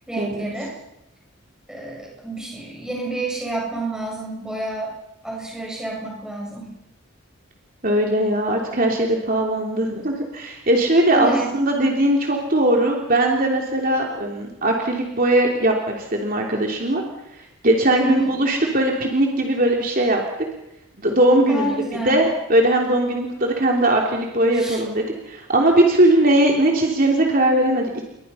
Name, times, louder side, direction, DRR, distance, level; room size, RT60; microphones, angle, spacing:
voice 1, 0.1-0.8 1.7-4.9 5.2-6.7 11.1-11.5 18.0-18.3 21.5-22.3 24.5-24.8, right 2 dB, 5° right, -2 dB, 7.6 m, -28 dB
voice 2, 7.8-17.0 17.6-20.2 21.0-21.7 22.0-28.0, right 1 dB, 40° right, 0 dB, 3.3 m, -19 dB
29.5 x 23.0 x 5.7 m, 0.89 s
head